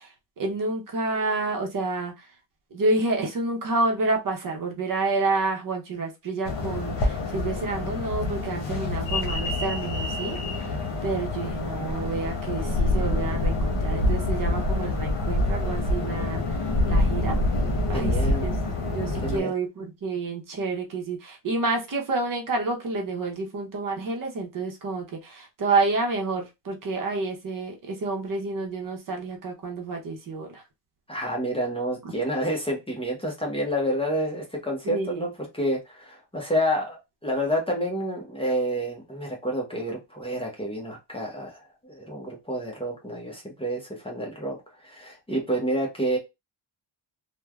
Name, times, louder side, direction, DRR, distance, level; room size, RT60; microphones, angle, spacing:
voice 1, 0.0-2.3 2.7-17.4 17.9-18.6 18.9-30.6 32.0-32.1 34.8-35.3, right 3 dB, 45° right, 1 dB, 0.7 m, -29 dB
sound 1, 6.4-19.4, left 2 dB, 70° left, 0.9 m, -26 dB
voice 2, 17.9-18.5 19.2-19.5 31.1-46.2, equal, 10° left, -1 dB, 0.7 m, -29 dB
3.1 x 2.2 x 2.3 m, 0.23 s
wide cardioid pair, 140°, 45 cm